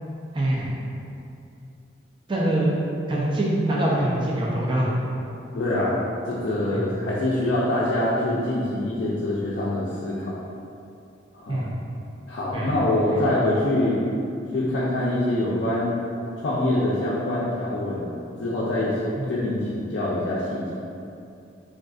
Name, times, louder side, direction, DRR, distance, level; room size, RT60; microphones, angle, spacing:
voice 1, 0.3-0.7 2.3-2.7 3.1-4.9 6.7-6.8 11.5-11.7 12.5-12.7 13.1-13.2 19.2-19.3, right 1 dB, 25° right, -5 dB, 0.4 m, -24 dB
voice 2, 5.5-6.0 6.3-10.3 11.3-11.6 12.3-14.0 14.5-16.0 16.4-18.1 18.4-19.0 19.3-20.6, left 1 dB, 55° left, -8 dB, 0.4 m, -24 dB
3.6 x 2.5 x 2.3 m, 2.6 s
head